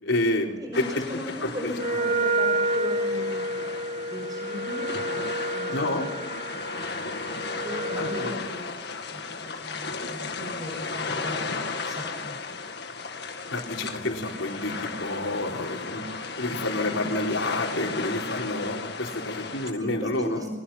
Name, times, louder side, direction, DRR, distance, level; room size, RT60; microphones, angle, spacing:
voice 1, 0.0-0.8 1.1-2.0 5.7-6.1 7.9-8.3 13.5-16.0 16.4-20.5, left 1 dB, 80° left, 0 dB, 4.6 m, -29 dB
voice 2, 0.6-5.8 6.2-6.6 7.3-8.7 9.1-12.3 19.8-20.5, equal, 20° right, 2 dB, 6.3 m, -38 dB
sound 1, 0.7-19.7, left 4 dB, 55° left, 2.0 m, -35 dB
Wind instrument woodwind instrument, 1.7-8.4, right 2 dB, 40° right, 1.8 m, -29 dB
29.5 x 24.0 x 5.9 m, 1.0 s
head